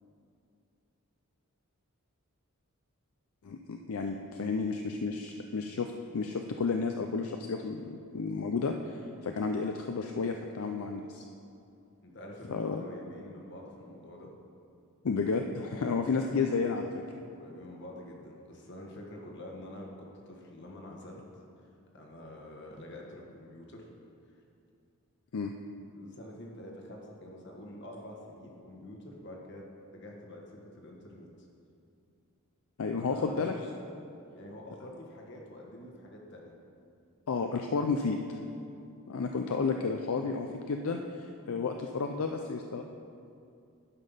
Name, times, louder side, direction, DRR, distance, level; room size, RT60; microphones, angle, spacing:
voice 1, 3.4-11.2 12.5-12.8 15.0-16.9 25.3-25.5 32.8-33.5 37.3-38.2 39.1-42.8, left 4 dB, 70° left, 4 dB, 0.5 m, -32 dB
voice 2, 12.0-14.3 15.9-16.7 17.3-21.2 21.9-23.9 25.9-31.5 32.9-33.5 34.3-36.5, left 1 dB, 50° left, 0 dB, 1.3 m, -47 dB
11.0 x 5.4 x 5.6 m, 2.5 s
head